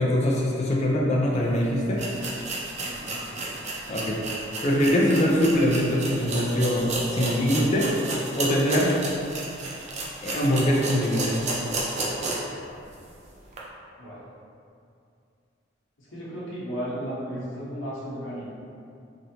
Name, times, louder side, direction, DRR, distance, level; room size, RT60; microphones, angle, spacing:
voice 1, 0.0-2.0 3.9-4.2 4.6-7.9 8.4-8.9 10.2-11.4, equal, 35° left, -3 dB, 0.4 m, -23 dB
sound 1, 1.4-1.5 1.9-12.6 12.9-13.0 13.5-13.6, right 2 dB, 35° right, 0.4 m, -32 dB
voice 2, 2.8-3.5 14.0-14.2 16.0-18.6, equal, 80° left, -9 dB, 1.0 m, -35 dB
3.0 x 2.7 x 2.7 m, 2.5 s
head